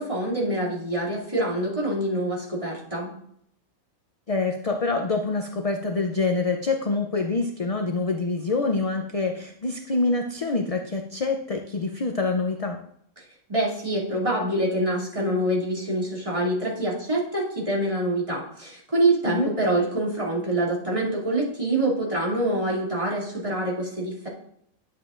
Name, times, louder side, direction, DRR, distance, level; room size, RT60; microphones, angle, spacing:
voice 1, 0.0-3.1 13.5-24.3, right 1 dB, 25° right, -6 dB, 2.6 m, -25 dB
voice 2, 4.3-12.8 19.3-19.5, left 3 dB, 45° left, 4 dB, 0.4 m, -26 dB
10.5 x 7.5 x 2.5 m, 0.69 s
omnidirectional pair, 1.4 m